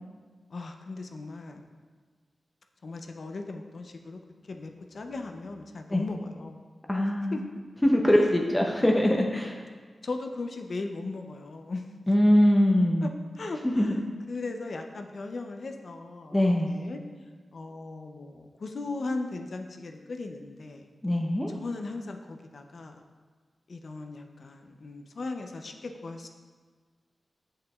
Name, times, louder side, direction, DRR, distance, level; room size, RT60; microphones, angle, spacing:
voice 1, 0.5-1.6 2.8-4.2 4.5-6.6 7.3-7.4 10.0-11.9 13.0-13.1 13.4-14.0 14.3-17.0 17.5-20.9 21.5-23.0 23.7-26.3, left 3 dB, 60° left, 4 dB, 0.5 m, -37 dB
voice 2, 6.9-7.4 7.8-9.6 12.1-13.1 13.6-13.9 16.3-16.7 21.0-21.5, left 1 dB, 15° left, 0 dB, 0.5 m, -22 dB
7.3 x 6.6 x 2.3 m, 1.5 s
wide cardioid pair, 85°, 0 cm